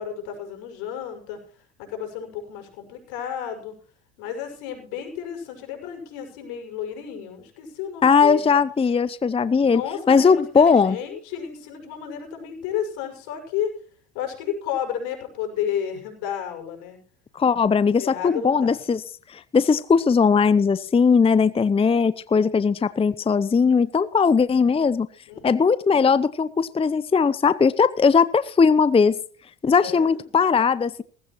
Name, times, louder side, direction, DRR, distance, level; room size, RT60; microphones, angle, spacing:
voice 1, 0.0-1.4 1.8-3.7 4.2-8.5 9.6-13.7 14.1-17.0 18.0-18.8 25.3-25.6 29.8-30.3, left 9 dB, 75° left, 4 dB, 6.3 m, -32 dB
voice 2, 8.0-9.8 10.1-11.0 17.4-19.0 19.3-25.1 25.4-29.2 29.6-31.0, left 5 dB, 15° left, 16 dB, 0.7 m, -19 dB
19.0 x 15.5 x 3.1 m, 0.44 s
supercardioid pair, 85°, 36 cm